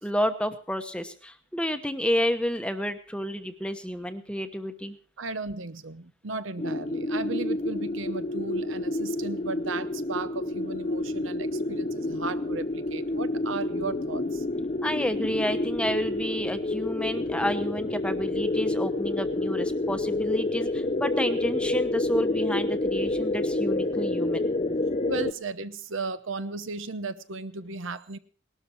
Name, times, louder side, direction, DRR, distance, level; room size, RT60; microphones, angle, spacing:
voice 1, 0.0-5.0 14.8-24.5, equal, 5° left, 8 dB, 1.0 m, -30 dB
voice 2, 5.2-14.4 25.1-28.2, right 3 dB, 65° right, 13 dB, 0.9 m, -35 dB
sound 1, 6.6-25.3, left 2 dB, 30° left, 0.6 m, -29 dB
19.0 x 12.5 x 4.5 m, 0.41 s
head